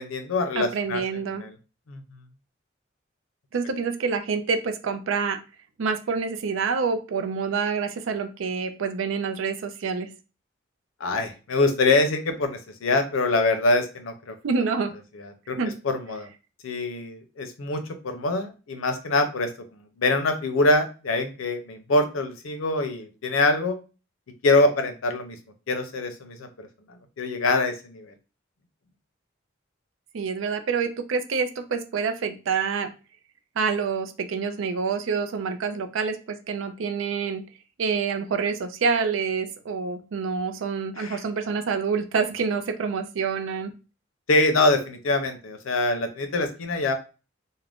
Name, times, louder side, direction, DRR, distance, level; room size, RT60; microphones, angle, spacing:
voice 1, 0.0-1.0 1.3-1.5 1.9-2.0 11.0-14.4 15.5-15.6 15.8-16.3 16.6-19.5 20.0-23.8 24.4-25.4 25.7-26.7 27.2-28.1 41.0-41.2 44.3-46.9, left 2 dB, 90° left, 7 dB, 0.6 m, -24 dB
voice 2, 0.6-1.4 3.5-5.4 5.8-10.1 14.4-14.9 15.6-15.7 30.1-32.9 33.6-37.4 37.8-43.7, right 5 dB, 80° right, 8 dB, 0.4 m, -27 dB
2.4 x 2.1 x 3.4 m, 0.32 s
head